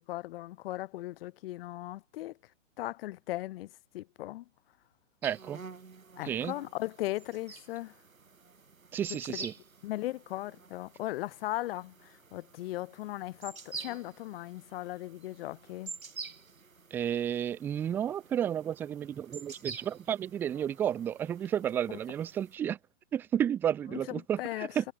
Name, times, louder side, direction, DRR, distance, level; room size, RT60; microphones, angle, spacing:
voice 1, 0.0-2.4 2.8-4.4 6.2-7.9 9.1-9.5 9.8-15.9 24.1-24.7, left 16 dB, 45° left, 2.3 m, -38 dB
voice 2, 5.2-5.6 6.2-6.5 8.9-9.5 16.9-22.8 23.1-24.9, right 9 dB, 5° right, 0.4 m, -32 dB
sound 1, 5.2-22.6, right 4 dB, 90° right, 8.0 m, -48 dB
hypercardioid pair, 130°, 40 cm